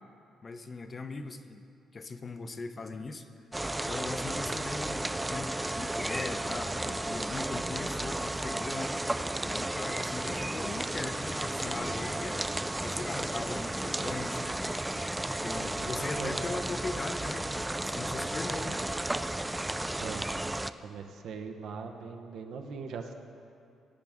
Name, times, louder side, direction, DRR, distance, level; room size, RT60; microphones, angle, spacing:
voice 1, 0.4-1.6 1.9-3.3 3.9-9.0 9.4-12.5 12.8-14.8 15.4-18.9, left 3 dB, 35° left, 9 dB, 0.7 m, -40 dB
sound 1, 3.5-20.7, right 1 dB, 10° right, 0.4 m, -33 dB
voice 2, 15.8-16.5 20.0-20.2 20.8-23.1, right 5 dB, 75° right, 4 dB, 1.0 m, -41 dB
18.5 x 9.0 x 3.6 m, 2.6 s
cardioid pair, 90°, 0 cm